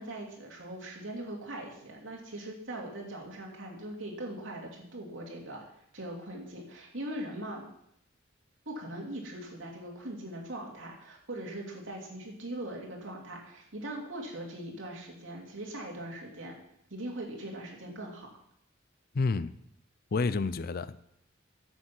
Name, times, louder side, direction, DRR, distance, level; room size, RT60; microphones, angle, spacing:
voice 1, 0.0-5.6 5.9-7.7 8.7-16.6 16.9-18.3, right 1 dB, 80° right, 2.8 m, -40 dB
voice 2, 19.1-19.5 20.1-21.0, left 4 dB, 50° left, 0.5 m, -29 dB
9.8 x 7.8 x 6.1 m
head